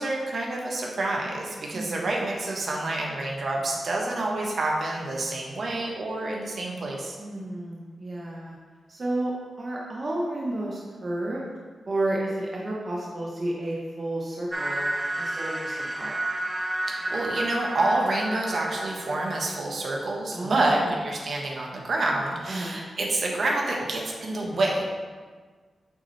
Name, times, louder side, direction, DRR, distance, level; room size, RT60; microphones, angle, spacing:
voice 1, 0.0-7.2 16.9-24.8, right 2 dB, 65° right, -1 dB, 1.2 m, -28 dB
voice 2, 1.7-2.1 7.2-8.6 8.9-11.5 11.9-14.9 15.2-16.1 20.3-20.9 22.5-22.8, right 1 dB, 45° right, -3 dB, 1.0 m, -31 dB
sound 1, 14.5-19.6, right 1 dB, 15° right, 0.5 m, -31 dB
8.4 x 3.9 x 3.2 m, 1.5 s
cardioid pair, 70°, 0 cm